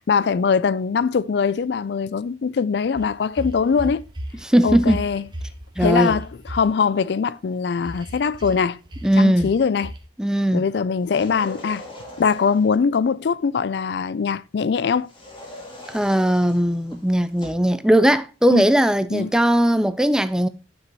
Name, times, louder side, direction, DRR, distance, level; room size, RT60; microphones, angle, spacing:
voice 1, 0.1-4.0 4.6-5.2 5.8-8.8 9.2-9.9 10.5-11.9 12.2-15.1 18.5-18.7 19.1-19.3, left 5 dB, 65° left, 0.4 m, -22 dB
sound 1, 3.0-4.3 4.6-6.6 7.9-8.6 8.9-9.1 9.4-9.6 9.8-10.0, right 1 dB, 25° right, 1.2 m, -33 dB
voice 2, 4.4-5.0 5.8-6.2 9.0-9.5 10.2-10.7 15.9-20.5, equal, 5° right, 0.4 m, -18 dB
sound 2, 11.0-12.8 15.0-17.7, left 1 dB, 30° left, 2.3 m, -41 dB
10.5 x 6.1 x 2.9 m
head